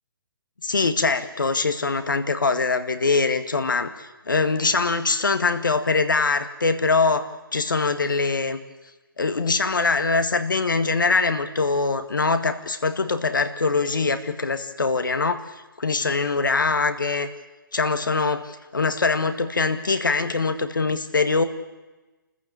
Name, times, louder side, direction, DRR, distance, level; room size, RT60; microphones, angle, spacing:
voice 1, 0.6-7.3 7.5-8.6 9.2-15.5 15.8-17.3 17.7-21.4, left 4 dB, 65° left, 9 dB, 2.0 m, -23 dB
28.5 x 14.5 x 8.8 m, 1.1 s
figure-of-eight pair, 135°, 12 cm